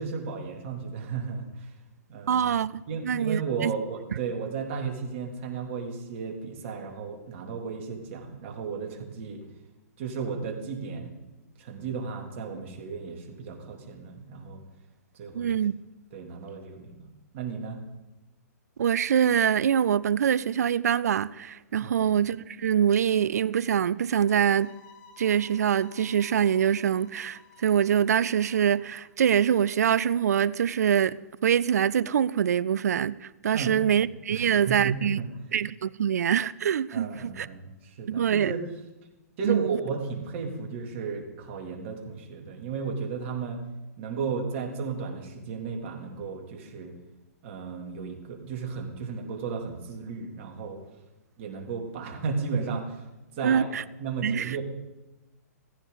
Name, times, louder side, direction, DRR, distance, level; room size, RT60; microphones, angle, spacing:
voice 1, 0.0-1.7 2.1-2.5 2.9-9.4 10.0-11.1 11.6-14.6 15.1-15.5 16.1-17.0 17.3-17.8 21.8-22.1 33.5-34.0 34.3-35.3 36.9-38.6 39.4-43.6 44.0-46.9 47.4-50.8 51.4-53.0 53.3-53.7 54.0-54.6, right 5 dB, 50° right, 3.0 m, -34 dB
voice 2, 2.3-3.7 15.3-15.7 18.8-24.7 25.2-35.2 35.5-37.5 38.1-38.5 39.4-39.8 53.4-53.8 54.2-54.6, right 8 dB, 70° right, 0.5 m, -24 dB
sound 1, 24.1-29.1, left 6 dB, 40° left, 2.0 m, -55 dB
16.5 x 15.0 x 4.0 m
hypercardioid pair, 125°, 9 cm